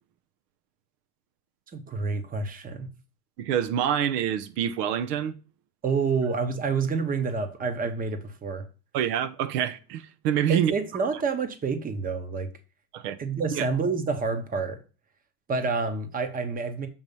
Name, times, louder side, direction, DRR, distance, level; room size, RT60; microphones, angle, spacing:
voice 1, 1.7-2.9 5.8-8.6 10.5-12.5 13.2-14.8 15.5-16.9, right 4 dB, 15° right, 0.9 m, -28 dB
voice 2, 3.4-5.3 8.9-10.7 12.9-13.2 13.5-13.7, right 9 dB, 75° right, 0.8 m, -26 dB
7.2 x 3.1 x 5.3 m
supercardioid pair, 125°, 48 cm